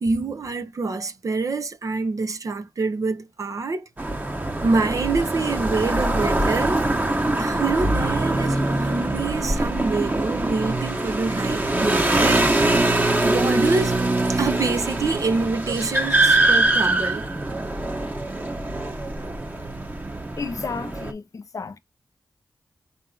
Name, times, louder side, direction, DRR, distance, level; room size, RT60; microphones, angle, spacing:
voice 1, 0.0-3.9 4.6-6.8 7.4-12.7 13.2-14.0 14.3-17.3, right 4 dB, 60° right, 0.6 m, -26 dB
sound 1, 4.0-21.1, right 2 dB, 25° right, 1.0 m, -23 dB
voice 2, 20.4-21.8, left 4 dB, 60° left, 0.6 m, -32 dB
4.2 x 2.8 x 3.7 m
cardioid pair, 50°, 6 cm